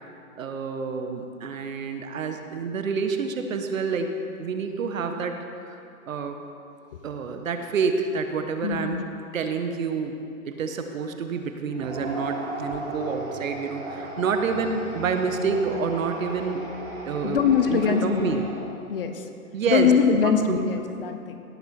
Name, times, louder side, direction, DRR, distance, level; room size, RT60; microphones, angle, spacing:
voice 1, 0.4-4.1 4.4-5.3 5.6-5.8 6.1-6.4 7.0-9.0 9.3-10.2 10.5-16.6 17.0-18.4 19.5-19.9 20.2-20.6, right 5 dB, 65° right, 6 dB, 1.1 m, -28 dB
voice 2, 8.6-9.0 17.2-18.4 18.9-19.2 19.7-21.4, left 6 dB, 40° left, 7 dB, 0.7 m, -22 dB
sound 1, 11.7-18.9, right 2 dB, 20° right, 1.8 m, -37 dB
17.5 x 6.1 x 4.4 m, 2.6 s
hypercardioid pair, 155°, 43 cm